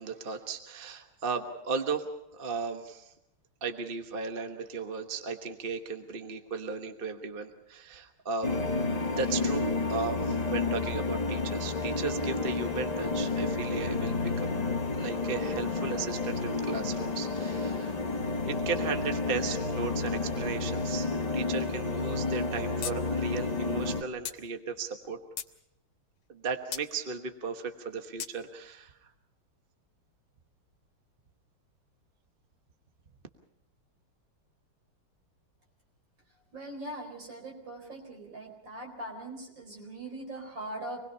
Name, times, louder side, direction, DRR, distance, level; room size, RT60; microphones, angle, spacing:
voice 1, 0.0-3.1 3.6-8.5 9.1-14.6 14.9-18.0 18.5-21.1 21.3-25.2 26.3-28.9, right 5 dB, 30° right, 6 dB, 1.1 m, -36 dB
sound 1, 8.4-24.0, left 3 dB, 55° left, 0.4 m, -31 dB
sound 2, 22.8-23.0 23.3-23.4 24.2-24.4 25.0-25.5 26.7-26.9 28.2-28.3, left 8 dB, 80° left, 2.0 m, -36 dB
voice 2, 36.5-41.0, right 1 dB, 60° right, 2 dB, 5.0 m, -41 dB
26.0 x 20.5 x 5.6 m, 0.83 s
omnidirectional pair, 2.3 m